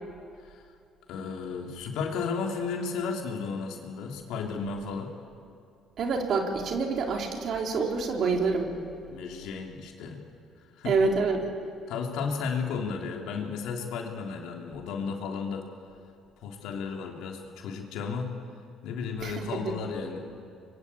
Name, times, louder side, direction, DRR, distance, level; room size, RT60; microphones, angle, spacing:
voice 1, 1.1-5.1 9.1-10.2 10.8-10.9 11.9-15.7 16.4-18.3 18.8-20.3, left 5 dB, 80° left, 1 dB, 3.3 m, -33 dB
voice 2, 6.0-8.7 10.8-11.5 19.2-19.7, right 4 dB, 60° right, 2 dB, 3.8 m, -27 dB
25.0 x 23.0 x 8.6 m, 2.5 s
supercardioid pair, 70°, 0 cm